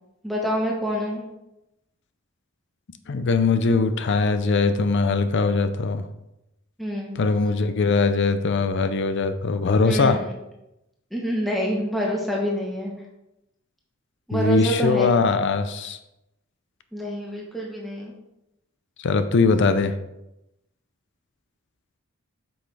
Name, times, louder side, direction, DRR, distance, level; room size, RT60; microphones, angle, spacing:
voice 1, 0.2-1.3 6.8-7.2 9.8-10.3 11.1-12.9 14.3-15.3 16.9-18.1, equal, ahead, -2 dB, 1.0 m, -27 dB
voice 2, 3.1-6.0 7.2-10.2 14.3-16.0 19.0-19.9, left 4 dB, 60° left, 10 dB, 0.5 m, -21 dB
8.1 x 6.3 x 3.3 m, 0.90 s
head